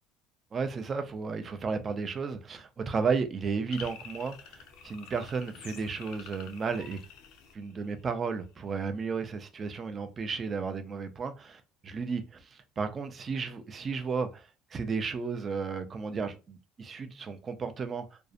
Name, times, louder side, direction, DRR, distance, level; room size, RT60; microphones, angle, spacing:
voice 1, 0.5-7.0 7.5-18.2, right 5 dB, 25° right, 0.3 m, -33 dB
sound 1, 3.7-8.2, left 7 dB, 70° left, 0.5 m, -48 dB
2.5 x 2.0 x 2.4 m
cardioid pair, 140°, 0 cm